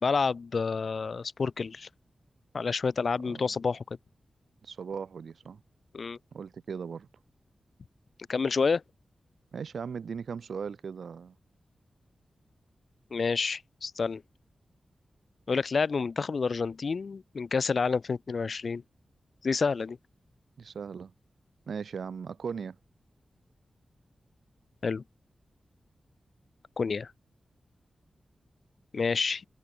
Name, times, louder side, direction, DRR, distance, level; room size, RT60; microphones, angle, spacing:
voice 1, 0.0-1.9 2.5-4.0 5.9-6.2 8.3-8.8 13.1-14.2 15.5-18.8 19.4-20.0 24.8-25.0 26.8-27.1 28.9-29.5, left 5 dB, 55° left, 0.6 m, -29 dB
voice 2, 4.6-5.6 6.3-7.1 9.5-11.3 20.6-21.1 21.7-22.8, right 6 dB, 80° right, 2.1 m, -38 dB
wide cardioid pair, 125°, 0 cm